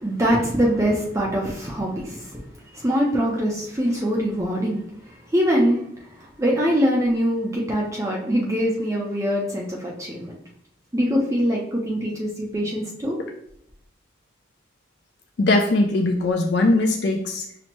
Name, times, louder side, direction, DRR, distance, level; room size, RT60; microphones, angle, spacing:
voice 1, 0.0-2.4 2.7-10.3 10.9-13.2, equal, 15° right, -2 dB, 0.5 m, -23 dB
voice 2, 15.4-17.4, left 2 dB, 60° left, 3 dB, 0.4 m, -20 dB
5.8 x 2.1 x 3.0 m, 0.71 s
head